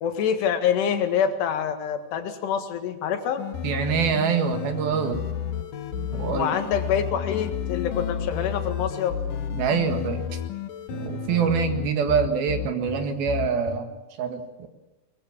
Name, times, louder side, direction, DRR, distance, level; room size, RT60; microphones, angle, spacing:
voice 1, 0.0-3.4 6.3-9.2, left 8 dB, 85° left, 7 dB, 3.9 m, -26 dB
sound 1, 3.4-13.8, left 8 dB, 65° left, 2.6 m, -31 dB
voice 2, 3.6-5.2 6.0-6.5 9.5-10.3 10.9-13.9 14.2-14.7, right 6 dB, 70° right, 6 dB, 3.6 m, -25 dB
23.0 x 21.5 x 7.3 m, 1.0 s
omnidirectional pair, 4.7 m